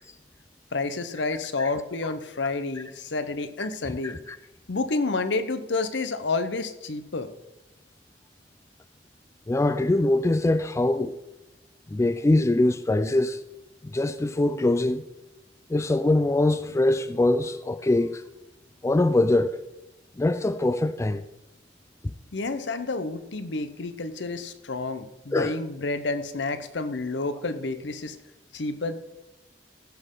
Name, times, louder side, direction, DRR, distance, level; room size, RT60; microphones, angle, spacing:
voice 1, 0.7-4.2 4.7-7.3 22.3-28.2 28.5-29.0, left 3 dB, 80° left, 0.8 m, -29 dB
voice 2, 4.0-4.4 9.5-11.1 11.9-13.4 13.9-15.0 15.7-18.1 18.8-19.5 20.2-21.2 25.3-25.5, left 2 dB, 15° left, 0.3 m, -23 dB
15.0 x 6.4 x 3.8 m
head